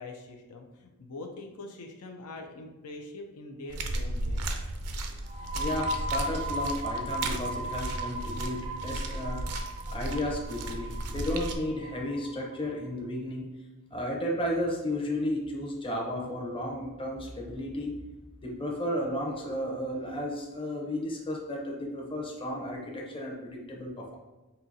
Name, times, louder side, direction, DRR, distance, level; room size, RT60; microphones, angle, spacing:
voice 1, 0.0-4.4, left 2 dB, 80° left, 2 dB, 0.5 m, -43 dB
sound 1, 3.7-11.6, right 2 dB, 85° right, 0.5 m, -35 dB
sound 2, 5.2-12.7, right 1 dB, 30° right, 0.4 m, -36 dB
voice 2, 5.5-9.5 9.9-13.5 13.9-17.9 18.4-24.2, left 1 dB, 25° left, -2 dB, 0.7 m, -33 dB
5.4 x 2.7 x 2.6 m, 1.1 s
head